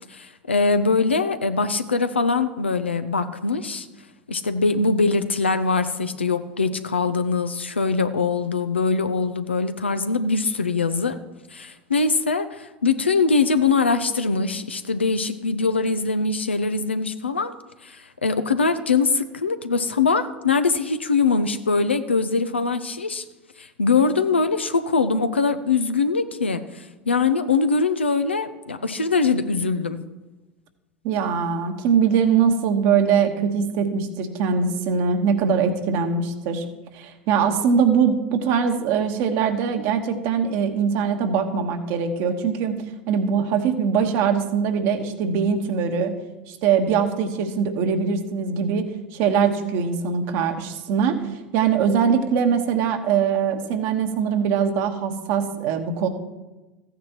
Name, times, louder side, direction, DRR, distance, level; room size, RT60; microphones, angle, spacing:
voice 1, 0.1-3.9 4.3-11.2 11.5-17.5 17.8-23.2 23.6-30.0, left 4 dB, 90° left, 10 dB, 0.6 m, -22 dB
voice 2, 31.0-36.6 36.9-46.1 46.5-48.8 49.1-51.2 51.5-56.1, right 6 dB, 55° right, 5 dB, 1.4 m, -22 dB
14.5 x 9.4 x 3.0 m, 1.1 s
hypercardioid pair, 80°, 6 cm